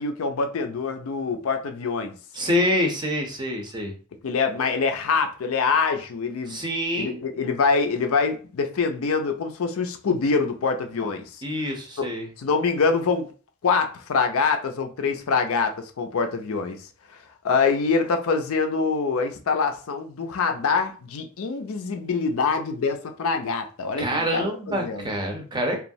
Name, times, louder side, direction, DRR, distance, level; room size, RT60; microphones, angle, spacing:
voice 1, 0.0-2.1 4.2-6.6 6.9-11.4 12.0-12.1 12.4-13.3 13.6-17.2 17.4-25.1, left 4 dB, 75° left, 0.4 m, -25 dB
voice 2, 2.3-3.9 6.5-7.2 11.4-12.3 24.0-25.8, equal, 20° right, 0.5 m, -26 dB
3.0 x 2.3 x 2.6 m
head